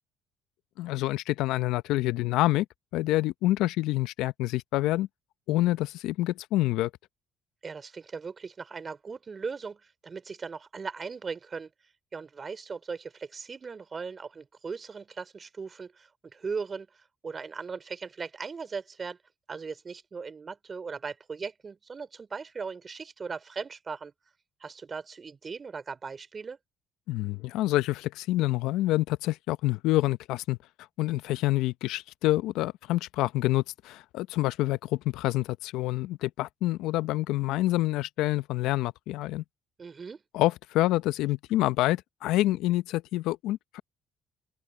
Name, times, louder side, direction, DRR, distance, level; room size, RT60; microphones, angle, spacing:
voice 1, 0.8-2.7 2.9-5.1 5.5-6.9 27.1-30.6 31.0-39.4 40.3-43.8, left 17 dB, 75° left, 0.8 m, -27 dB
voice 2, 7.6-11.7 12.1-19.2 19.5-24.1 24.6-26.6 39.8-40.2, right 5 dB, 40° right, 3.0 m, -38 dB
open air
hypercardioid pair, 60°, 0 cm